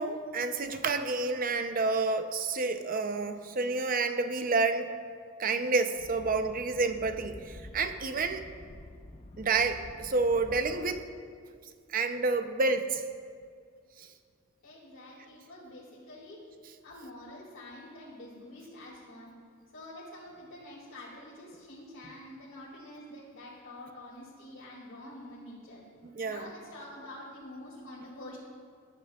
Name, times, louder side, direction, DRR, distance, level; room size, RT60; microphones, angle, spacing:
voice 1, 0.0-4.9 5.4-8.5 9.4-11.0 11.9-13.0 14.0-14.1 26.0-26.5, right 3 dB, 45° right, 8 dB, 0.6 m, -29 dB
sound 1, 6.0-11.0, left 1 dB, 30° left, 0.6 m, -48 dB
voice 2, 14.6-16.4 16.8-19.4 19.7-25.8 26.3-28.4, left 1 dB, 75° left, -8 dB, 2.5 m, -47 dB
20.0 x 10.5 x 2.4 m, 2.2 s
head